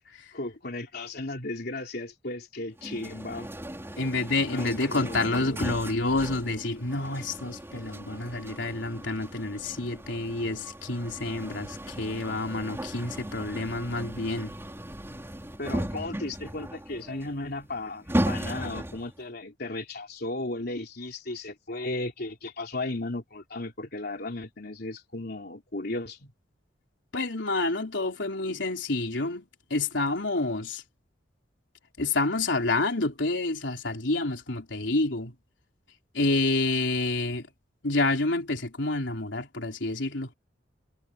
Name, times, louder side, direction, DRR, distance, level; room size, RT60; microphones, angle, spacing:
voice 1, 0.3-3.5 4.5-5.6 15.6-26.3, left 2 dB, 60° left, 3.6 m, -35 dB
sound 1, 2.8-19.2, equal, 15° right, 4.2 m, -36 dB
voice 2, 4.0-14.5 27.1-30.8 32.0-35.3 36.1-37.5 37.8-40.3, left 2 dB, 80° left, 3.7 m, -28 dB
head